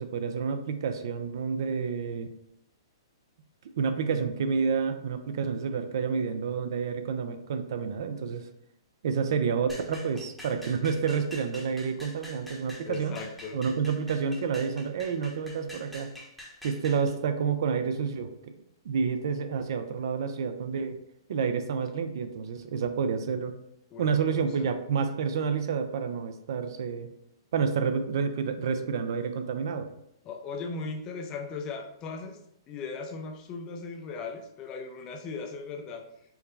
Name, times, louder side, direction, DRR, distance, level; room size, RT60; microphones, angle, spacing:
voice 1, 0.0-2.3 3.8-8.5 9.0-13.2 13.5-16.1 16.6-18.5 18.8-21.0 21.3-23.5 24.0-27.1 27.5-29.9, right 6 dB, 65° right, 8 dB, 0.4 m, -29 dB
sound 1, 9.7-17.1, left 1 dB, 5° left, 0.9 m, -46 dB
voice 2, 12.8-13.6 23.9-24.7 30.2-32.4 32.7-36.1, left 4 dB, 30° left, 4 dB, 0.5 m, -38 dB
4.6 x 2.1 x 3.3 m, 0.75 s
hypercardioid pair, 125°, 2 cm